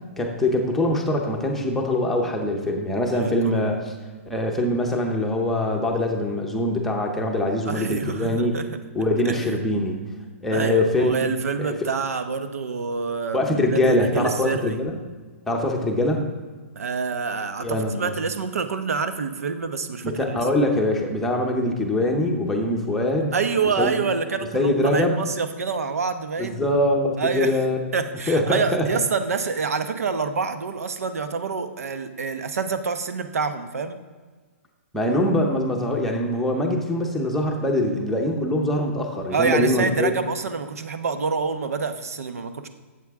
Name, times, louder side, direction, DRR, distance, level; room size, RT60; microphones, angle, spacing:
voice 1, 0.2-3.9 4.3-8.5 8.9-10.0 10.4-11.2 11.6-11.8 13.3-15.0 15.5-16.2 17.6-18.1 20.0-23.3 23.8-24.0 24.5-25.2 26.4-27.8 28.3-28.8 34.9-40.1, left 1 dB, 5° left, 0 dB, 0.7 m, -23 dB
voice 2, 3.2-3.6 7.7-8.7 9.2-9.4 10.5-14.8 16.8-20.4 23.3-26.7 27.2-27.6 27.9-34.0 39.3-42.7, right 5 dB, 85° right, 9 dB, 0.9 m, -27 dB
12.5 x 7.7 x 3.5 m, 1.4 s
hypercardioid pair, 175°, 8 cm